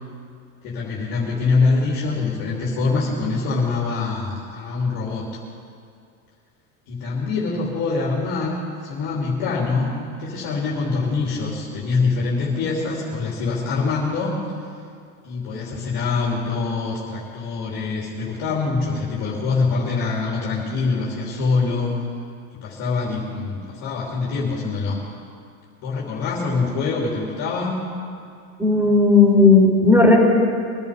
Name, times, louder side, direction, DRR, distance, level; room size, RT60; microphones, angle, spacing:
voice 1, 0.6-5.3 6.9-14.4 15.2-21.9 22.5-25.0 25.8-27.9, left 4 dB, 55° left, -4 dB, 3.3 m, -24 dB
voice 2, 28.6-30.3, left 3 dB, 5° right, -1 dB, 3.8 m, -14 dB
22.5 x 11.5 x 5.3 m, 2.3 s
supercardioid pair, 120°, 43 cm